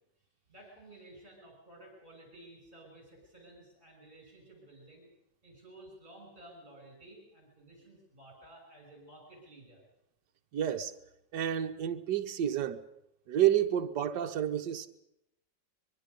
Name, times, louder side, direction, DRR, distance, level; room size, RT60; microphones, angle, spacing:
voice 1, 0.2-5.1 5.4-9.9, right 1 dB, 30° right, 7.0 m, -54 dB
voice 2, 10.5-10.9 11.3-12.8 13.3-14.9, right 10 dB, 70° right, 1.6 m, -29 dB
24.0 x 23.0 x 5.4 m
omnidirectional pair, 1.9 m